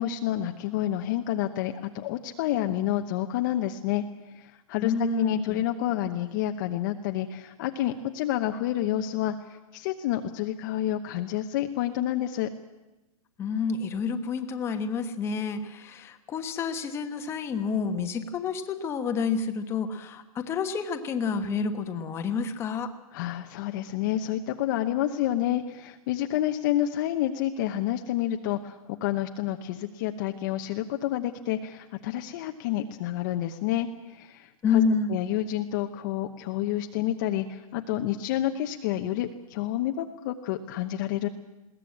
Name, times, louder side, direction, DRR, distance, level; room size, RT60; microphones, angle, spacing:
voice 1, 0.0-4.0 4.3-12.5 23.1-34.8 35.1-41.3, left 12 dB, 30° left, 6 dB, 0.9 m, -29 dB
voice 2, 4.8-5.6 13.4-22.9 34.6-35.2, left 5 dB, 15° left, 7 dB, 1.2 m, -29 dB
21.0 x 16.5 x 8.6 m, 1.1 s
hypercardioid pair, 160°, 19 cm